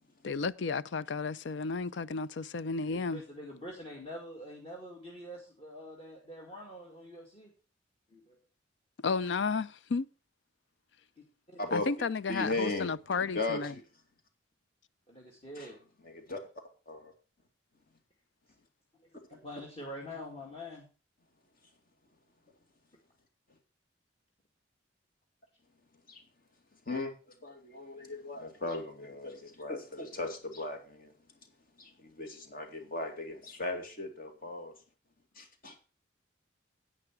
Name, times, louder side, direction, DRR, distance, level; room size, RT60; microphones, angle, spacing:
voice 1, 0.2-3.2 9.0-10.1 11.7-13.7, left 4 dB, 65° left, 0.5 m, -33 dB
voice 2, 2.9-7.5 8.1-8.4 11.5-11.6 15.1-15.8 19.3-20.9, left 1 dB, 30° left, 2.2 m, -45 dB
voice 3, 12.3-13.8 15.6-15.7 16.1-16.4 16.9-17.1 19.3-19.4 26.1-26.2 26.9-27.1 27.4-31.1 31.8-34.7 35.4-35.8, left 2 dB, 50° left, 2.4 m, -37 dB
11.0 x 8.8 x 4.6 m
head